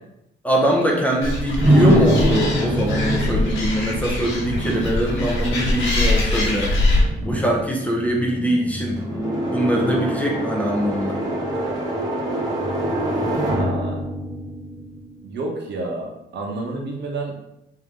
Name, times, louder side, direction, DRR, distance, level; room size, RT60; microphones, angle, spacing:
voice 1, 0.4-6.7 7.3-8.9 9.5-11.2, equal, 5° left, -2 dB, 0.5 m, -22 dB
Animal, 1.2-7.0, left 2 dB, 80° left, 1.3 m, -23 dB
sound 1, 1.6-15.4, right 1 dB, 20° right, 1.0 m, -24 dB
voice 2, 13.4-14.1 15.2-17.4, right 2 dB, 65° right, 0 dB, 0.9 m, -30 dB
3.7 x 2.7 x 3.6 m, 0.85 s
cardioid pair, 155°, 19 cm